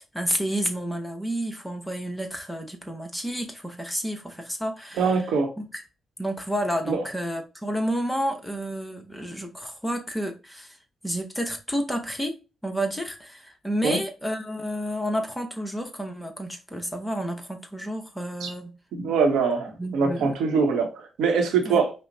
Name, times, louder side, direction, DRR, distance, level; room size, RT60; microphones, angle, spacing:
voice 1, 0.1-5.2 5.6-5.8 6.2-10.8 11.0-12.4 12.6-18.7 19.8-20.3 21.6-21.8, equal, 10° left, 0.9 m, -30 dB
voice 2, 5.0-5.5 6.9-7.0 13.8-14.0 18.4-18.5 18.9-21.9, right 5 dB, 85° right, 0.9 m, -23 dB
5.3 x 2.0 x 2.7 m
cardioid pair, 65°, 0 cm